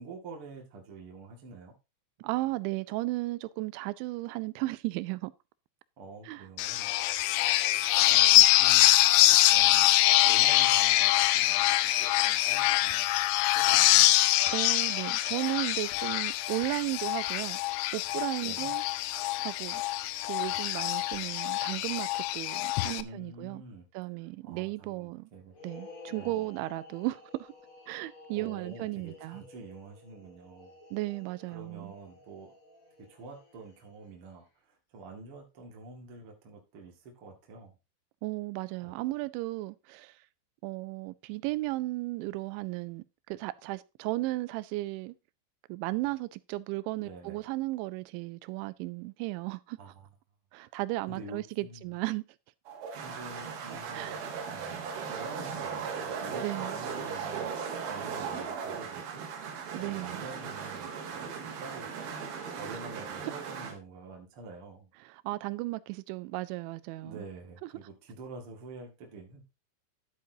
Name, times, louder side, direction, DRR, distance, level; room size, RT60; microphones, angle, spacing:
voice 1, 0.0-1.7 6.0-6.9 8.1-9.1 9.4-13.1 13.5-13.9 18.4-18.7 23.0-23.9 24.4-25.5 26.1-26.5 28.3-30.8 31.5-32.5 33.0-37.8 38.8-39.0 47.0-47.4 49.8-50.1 51.1-51.9 53.0-57.5 57.9-59.3 59.8-62.1 62.6-64.9 67.0-69.4, right 3 dB, 45° right, 1.9 m, -47 dB
voice 2, 2.2-5.3 6.2-6.5 14.5-17.6 17.9-18.8 19.4-19.8 20.3-23.6 23.9-25.3 25.6-27.5 27.9-29.4 30.9-31.9 38.2-40.2 40.6-45.2 45.7-49.8 50.5-52.2 53.9-54.2 56.4-56.8 59.7-60.2 65.0-67.2, right 19 dB, 85° right, 3.0 m, -35 dB
sound 1, 6.6-23.0, left 16 dB, 80° left, 2.4 m, -24 dB
sound 2, 25.5-34.1, left 3 dB, 65° left, 0.8 m, -52 dB
sound 3, 52.7-63.7, right 6 dB, 60° right, 3.4 m, -37 dB
11.5 x 8.5 x 2.7 m
omnidirectional pair, 5.3 m